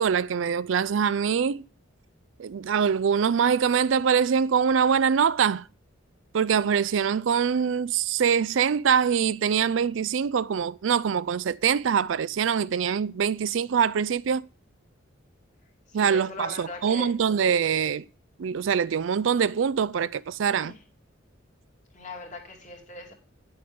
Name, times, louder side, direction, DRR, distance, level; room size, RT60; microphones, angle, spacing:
voice 1, 0.0-1.6 2.4-5.7 6.3-14.4 15.9-18.1 18.4-20.7, right 7 dB, 70° right, 0.4 m, -24 dB
voice 2, 15.9-17.1 20.6-20.8 21.9-23.1, left 2 dB, 40° left, 2.8 m, -40 dB
10.0 x 7.7 x 5.2 m
head